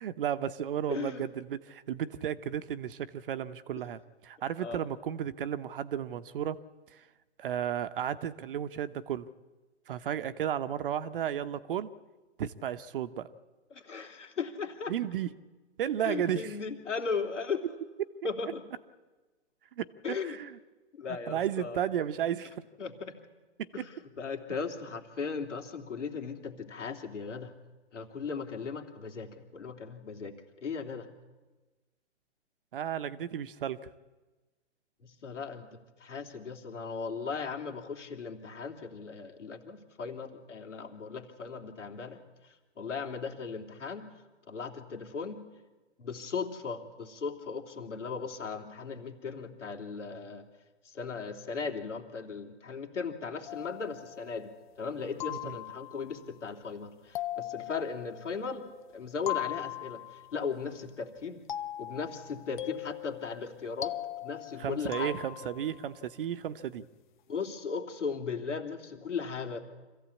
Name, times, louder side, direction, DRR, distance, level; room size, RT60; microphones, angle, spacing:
voice 1, 0.0-6.6 6.9-7.1 7.4-9.3 9.9-11.9 12.4-13.3 14.9-15.3 15.8-16.6 19.8-20.6 21.3-22.6 23.6-23.8 32.7-33.8 55.3-55.6 64.6-66.9, right 9 dB, 50° right, 12 dB, 0.9 m, -33 dB
voice 2, 0.9-1.2 4.6-4.9 13.7-14.9 16.0-17.7 18.2-18.6 20.0-20.4 20.9-21.8 22.8-23.1 23.7-23.9 24.2-27.5 27.9-30.3 30.6-31.1 35.0-44.0 44.5-45.4 46.0-50.5 50.8-58.7 58.9-61.4 61.8-65.1 67.3-69.6, left 5 dB, 85° left, 5 dB, 3.2 m, -37 dB
sound 1, 53.5-54.6 55.2-56.2 57.2-58.7 59.3-60.4 61.5-65.8, left 15 dB, 45° left, 0.7 m, -39 dB
26.0 x 15.5 x 8.4 m, 1.2 s
hypercardioid pair, 145°, 35 cm